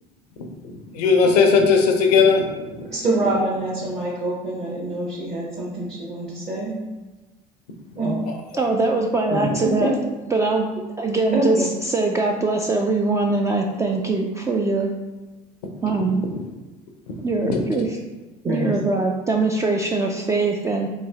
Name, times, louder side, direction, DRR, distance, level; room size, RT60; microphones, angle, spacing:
voice 1, 0.4-2.9 8.2-8.6 15.8-15.9 16.3-16.4 17.1-17.2 17.4-17.8, left 5 dB, 85° left, 4 dB, 0.6 m, -19 dB
voice 2, 2.9-6.8 8.0-8.2 9.3-9.5 9.8-9.9 11.3-11.7 18.4-18.8, right 2 dB, 35° right, -6 dB, 1.1 m, -25 dB
voice 3, 8.6-9.9 10.3-14.9 15.8-16.2 17.2-17.9 18.4-20.9, right 3 dB, 15° right, 1 dB, 0.3 m, -22 dB
3.1 x 2.6 x 3.5 m, 1.2 s
hypercardioid pair, 70°, 20 cm